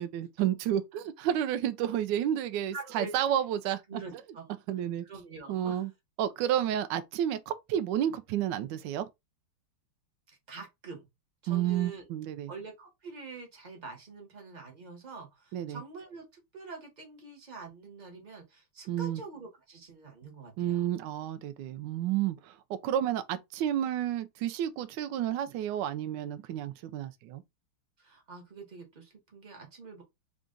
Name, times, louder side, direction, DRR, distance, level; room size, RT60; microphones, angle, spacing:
voice 1, 0.0-4.2 4.7-5.0 5.5-5.9 6.2-9.1 11.5-12.5 15.5-15.8 18.9-19.2 20.6-27.4, right 11 dB, 75° right, 1.0 m, -31 dB
voice 2, 2.7-3.1 3.9-4.5 5.0-5.8 10.3-11.0 11.4-12.1 12.5-20.8 28.0-30.0, right 4 dB, 45° right, 0.5 m, -45 dB
3.9 x 2.4 x 3.6 m
omnidirectional pair, 2.4 m